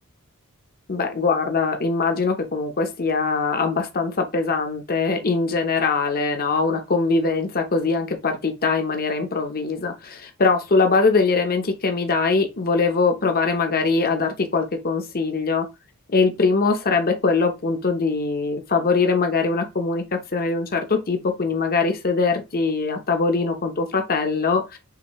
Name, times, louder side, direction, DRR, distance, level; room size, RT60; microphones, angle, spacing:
voice 1, 0.9-15.7 16.1-24.8, left 4 dB, 45° left, 0.8 m, -22 dB
5.9 x 2.7 x 3.1 m
head